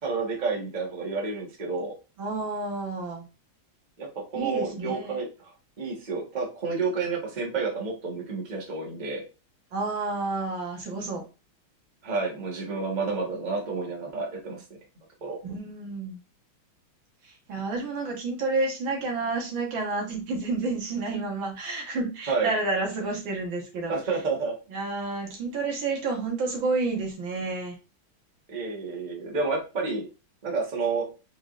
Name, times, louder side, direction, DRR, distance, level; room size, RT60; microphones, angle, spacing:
voice 1, 0.0-1.9 4.0-5.5 5.8-9.2 12.0-14.6 15.2-15.4 22.3-22.5 23.9-24.5 28.5-30.1 30.4-31.0, right 4 dB, 25° right, -1 dB, 1.2 m, -30 dB
voice 2, 2.2-3.2 4.4-5.2 9.7-11.2 15.4-16.2 17.5-24.0 24.7-27.8, right 3 dB, 70° right, 1 dB, 2.0 m, -30 dB
4.9 x 3.8 x 2.4 m, 0.31 s
omnidirectional pair, 2.2 m